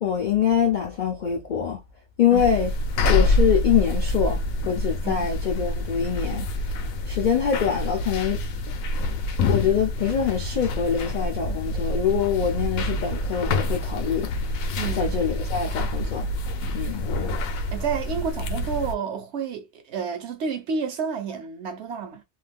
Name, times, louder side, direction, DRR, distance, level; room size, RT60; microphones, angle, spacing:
voice 1, 0.0-1.8 2.2-2.7 3.1-6.7 7.0-8.4 9.5-14.3 14.9-16.3 16.7-17.1, left 8 dB, 60° left, 0.4 m, -24 dB
sound 1, 2.3-18.9, left 1 dB, 85° left, 1.0 m, -26 dB
voice 2, 14.8-15.1 17.1-17.4 17.7-22.2, right 6 dB, 60° right, 0.8 m, -30 dB
2.6 x 2.2 x 3.4 m
omnidirectional pair, 1.4 m